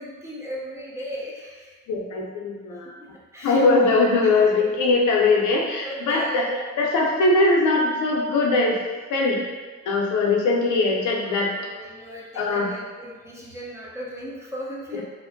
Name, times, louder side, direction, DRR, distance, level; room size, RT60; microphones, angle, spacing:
voice 1, 0.0-1.7 3.3-3.7 5.8-6.4 11.2-15.0, equal, 10° right, -5 dB, 0.5 m, -37 dB
voice 2, 1.9-2.9 3.4-6.5 6.8-8.8 9.1-9.4 9.9-11.7 12.3-12.7, left 3 dB, 75° left, -1 dB, 0.5 m, -21 dB
2.5 x 2.0 x 2.5 m, 1.4 s
cardioid pair, 90°, 30 cm